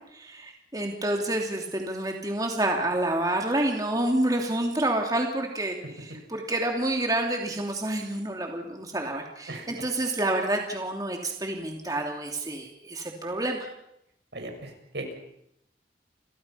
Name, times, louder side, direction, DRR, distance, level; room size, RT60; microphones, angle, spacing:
voice 1, 0.1-13.7, right 1 dB, 20° right, 2 dB, 3.0 m, -28 dB
voice 2, 9.5-9.8 14.3-15.2, right 1 dB, 80° right, 4 dB, 6.6 m, -38 dB
30.0 x 24.5 x 5.8 m, 0.78 s
head